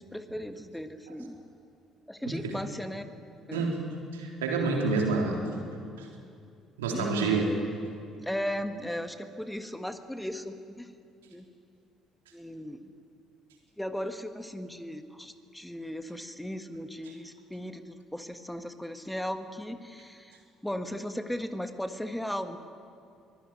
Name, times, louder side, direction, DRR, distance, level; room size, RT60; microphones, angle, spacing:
voice 1, 0.0-1.4 2.1-3.0 3.5-3.7 6.9-7.5 8.2-10.9 11.3-11.4 12.3-12.9 13.8-22.6, equal, 5° left, 8 dB, 1.6 m, -36 dB
voice 2, 3.5-3.8 4.1-5.4 6.0-6.1 6.8-7.5, right 4 dB, 75° right, 0 dB, 3.6 m, -28 dB
23.5 x 18.5 x 9.5 m, 2.4 s
figure-of-eight pair, 50°, 0 cm